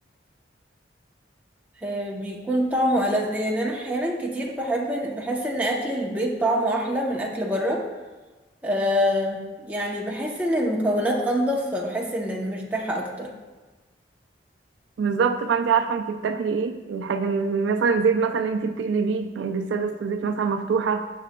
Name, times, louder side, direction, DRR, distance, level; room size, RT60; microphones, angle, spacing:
voice 1, 1.8-7.8 8.6-13.3, equal, 10° right, -2 dB, 0.7 m, -25 dB
voice 2, 15.0-21.0, right 5 dB, 75° right, 8 dB, 0.3 m, -24 dB
7.3 x 6.9 x 2.2 m, 1.2 s
head